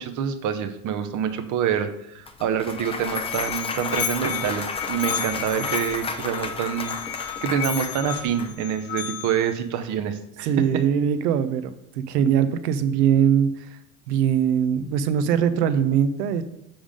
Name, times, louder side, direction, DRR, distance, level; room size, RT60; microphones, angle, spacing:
voice 1, 0.0-10.8, right 8 dB, 35° right, 10 dB, 0.8 m, -27 dB
Clapping / Cheering / Applause, 2.3-8.5, left 4 dB, 10° left, 0.5 m, -33 dB
Musical instrument, 2.6-9.5, left 10 dB, 75° left, 0.9 m, -33 dB
voice 2, 10.4-13.7 14.1-16.4, right 8 dB, 70° right, 12 dB, 0.8 m, -21 dB
7.1 x 3.6 x 5.1 m, 0.79 s
hypercardioid pair, 95°, 50 cm